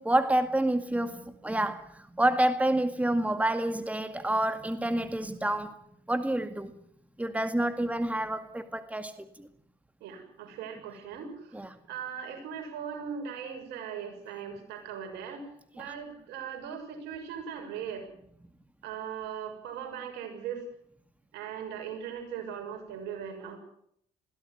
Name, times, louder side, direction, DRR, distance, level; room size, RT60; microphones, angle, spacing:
voice 1, 0.0-5.8 6.1-6.7 7.2-9.5 11.5-11.7 15.8-15.9, right 1 dB, 10° right, 2.0 m, -28 dB
voice 2, 10.0-11.6 11.9-15.5 15.7-18.1 18.8-20.6 21.3-23.6, right 7 dB, 75° right, 6.9 m, -39 dB
21.5 x 16.5 x 9.6 m
hypercardioid pair, 55°, 18 cm